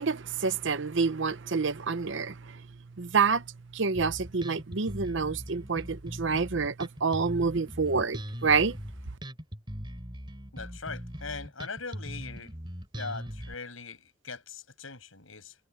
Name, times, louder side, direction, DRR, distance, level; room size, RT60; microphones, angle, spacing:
voice 1, 0.0-2.3 3.0-3.4 3.7-8.8, right 5 dB, 60° right, 0.8 m, -27 dB
Bass guitar, 3.9-13.5, equal, 25° right, 3.7 m, -40 dB
voice 2, 10.5-12.5 12.9-15.6, left 4 dB, 80° left, 6.8 m, -41 dB
head